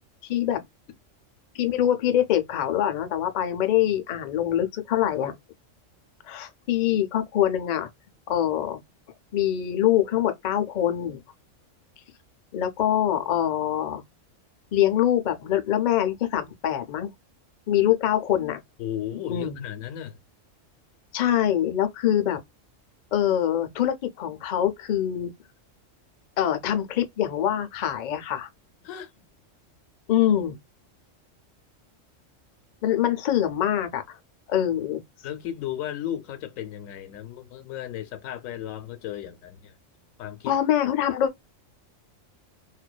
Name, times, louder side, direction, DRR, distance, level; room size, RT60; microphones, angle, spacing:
voice 1, 0.2-0.6 1.5-5.3 6.2-7.9 8.3-8.8 9.3-11.2 12.5-14.0 14.7-17.1 17.7-18.6 19.3-19.6 21.1-22.4 23.1-25.3 26.4-28.5 30.1-30.6 32.8-34.2 34.5-35.0 40.5-41.3, left 11 dB, 60° left, 0.4 m, -24 dB
voice 2, 18.8-20.2 28.8-29.1 35.2-39.7 40.2-40.5, left 11 dB, 90° left, 1.0 m, -35 dB
2.5 x 2.2 x 2.2 m
omnidirectional pair, 1.3 m